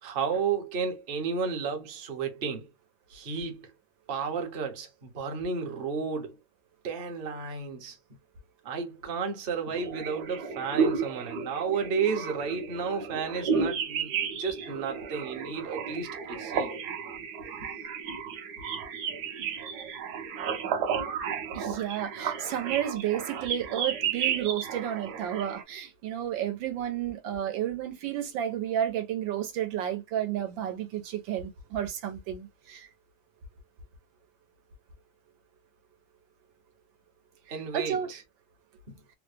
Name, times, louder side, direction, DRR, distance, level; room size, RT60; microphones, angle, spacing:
voice 1, 0.0-2.7 3.1-3.7 4.1-6.4 6.8-8.0 8.6-16.7 37.5-38.2, right 6 dB, 45° right, 0.8 m, -32 dB
sound 1, 9.7-25.6, right 6 dB, 65° right, 1.2 m, -33 dB
voice 2, 21.5-32.9 37.7-38.1, right 10 dB, 85° right, 1.5 m, -31 dB
3.5 x 2.1 x 3.3 m
omnidirectional pair, 2.0 m